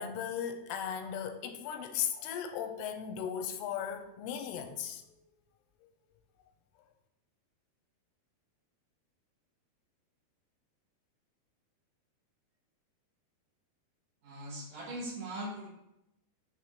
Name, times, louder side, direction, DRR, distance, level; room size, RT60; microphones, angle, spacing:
voice 1, 0.0-5.0 5.8-5.9, left 8 dB, 85° left, 2.7 m, -37 dB
voice 2, 14.2-15.7, right 1 dB, 65° right, 1.9 m, -40 dB
6.5 x 3.6 x 6.0 m
omnidirectional pair, 4.7 m